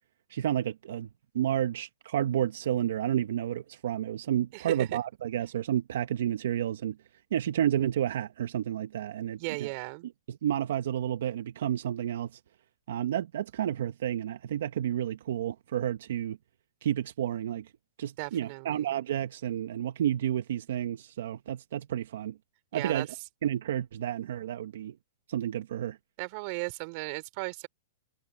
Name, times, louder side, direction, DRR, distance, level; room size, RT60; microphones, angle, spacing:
voice 1, 0.3-1.1 1.3-7.0 7.3-9.7 10.3-12.4 12.9-16.4 16.8-17.7 18.0-22.4 22.7-23.1 23.4-24.9 25.3-26.0, right 11 dB, 65° right, 1.4 m, -30 dB
voice 2, 4.5-4.9 9.4-10.1 18.2-18.9 22.7-23.1 26.2-27.7, right 29 dB, 40° right, 3.4 m, -36 dB
hypercardioid pair, 145°, 0 cm